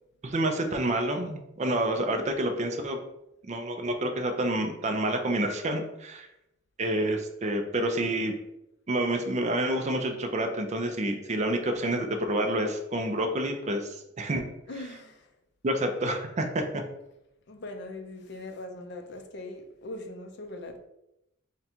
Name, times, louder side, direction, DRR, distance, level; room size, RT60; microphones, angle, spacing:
voice 1, 0.2-3.0 3.5-6.3 6.8-8.3 8.9-14.4 15.6-16.8, right 1 dB, 35° right, 5 dB, 0.4 m, -28 dB
voice 2, 14.7-15.3 17.5-20.8, left 2 dB, 55° left, 5 dB, 0.5 m, -41 dB
3.8 x 2.2 x 4.3 m, 0.85 s
head